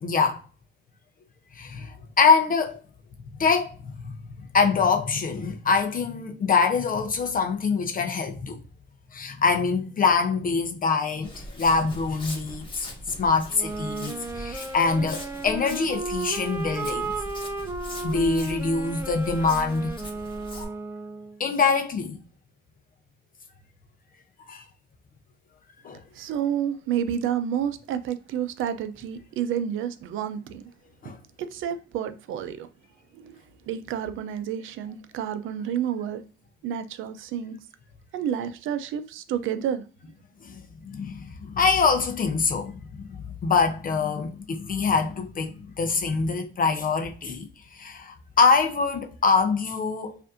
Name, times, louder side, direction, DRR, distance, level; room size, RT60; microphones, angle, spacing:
voice 1, 0.0-0.4 1.5-2.8 3.4-4.2 4.5-8.6 9.1-12.9 13.2-17.1 18.0-20.0 21.4-22.2 24.4-24.6 25.8-26.0 31.0-31.2 40.4-40.6 40.9-50.2, left 4 dB, 45° left, 0.6 m, -24 dB
Walk footsteps, 11.2-20.6, equal, 25° left, 1.3 m, -40 dB
sound 1, 13.5-21.4, right 2 dB, 10° right, 0.4 m, -34 dB
voice 2, 26.1-30.6 31.4-32.7 33.1-33.4 33.7-36.2 36.6-37.6 38.1-39.8, right 9 dB, 85° right, 0.5 m, -30 dB
5.0 x 2.6 x 2.5 m
cardioid pair, 90°, 20 cm